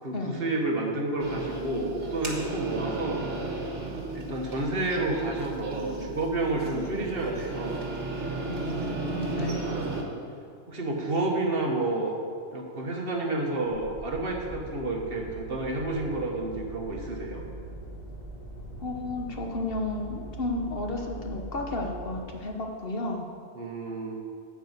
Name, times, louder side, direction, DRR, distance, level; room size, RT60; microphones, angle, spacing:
voice 1, 0.0-3.2 3.9-7.8 9.6-10.0 10.7-12.2 12.5-17.4 23.5-24.1, right 2 dB, 55° right, 0 dB, 1.6 m, -30 dB
sound 1, 1.2-10.0, right 2 dB, 80° right, 1.8 m, -34 dB
voice 2, 8.5-9.7 18.8-23.3, left 2 dB, 55° left, 2 dB, 1.2 m, -33 dB
sound 2, 13.6-22.2, right 1 dB, 40° left, 2.2 m, -42 dB
11.5 x 4.8 x 8.1 m, 2.3 s
omnidirectional pair, 1.2 m